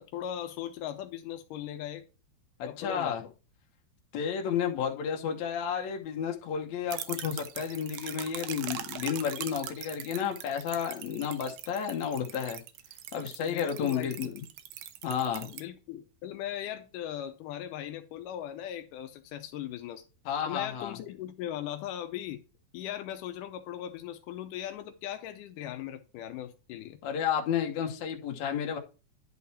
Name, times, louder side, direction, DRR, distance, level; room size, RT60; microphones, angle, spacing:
voice 1, 0.0-2.1 2.7-3.2 13.4-14.2 15.5-20.0 20.5-22.4 22.7-27.0, left 11 dB, 85° left, 2.3 m, -39 dB
voice 2, 2.6-3.2 4.1-12.6 13.1-14.4 15.0-15.5 20.3-21.0 27.0-28.8, left 8 dB, 70° left, 2.2 m, -32 dB
sound 1, 6.9-15.6, right 11 dB, 75° right, 1.8 m, -41 dB
10.5 x 3.9 x 4.2 m
omnidirectional pair, 3.6 m